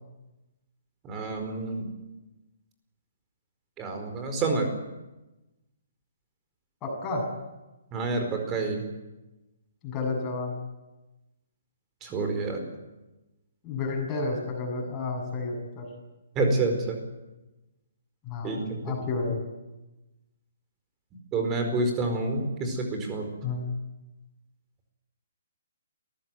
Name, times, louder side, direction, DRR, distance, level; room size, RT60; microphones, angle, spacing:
voice 1, 1.0-1.9 3.8-4.7 7.9-8.8 12.0-12.6 16.3-17.0 18.4-19.0 21.3-23.3, right 3 dB, 20° right, 4 dB, 4.7 m, -28 dB
voice 2, 6.8-7.3 9.8-10.5 13.6-15.9 18.2-19.4 23.4-23.6, left 3 dB, 20° left, 0 dB, 7.6 m, -31 dB
21.5 x 15.0 x 9.4 m, 1.0 s
figure-of-eight pair, 130°, 0 cm